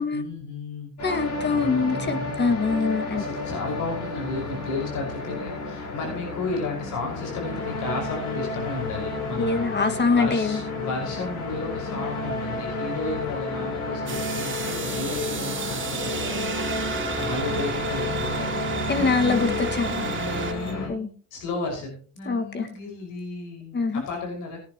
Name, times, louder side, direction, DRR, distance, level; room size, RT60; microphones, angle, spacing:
voice 1, 0.0-0.9 1.5-2.3 3.1-18.5 18.9-24.6, left 3 dB, 90° left, 1 dB, 5.5 m, -33 dB
sound 1, 1.0-20.9, left 3 dB, 70° left, 4.7 m, -31 dB
voice 2, 1.0-3.3 9.4-10.6 18.9-19.9 20.9-21.1 22.3-22.7 23.7-24.0, left 4 dB, 35° left, 6 dB, 1.9 m, -24 dB
sound 2, 14.1-20.5, right 5 dB, 40° right, 2.9 m, -32 dB
sound 3, 15.6-20.8, right 10 dB, 75° right, 1.7 m, -42 dB
18.0 x 10.0 x 3.0 m, 0.41 s
cardioid pair, 90°, 30 cm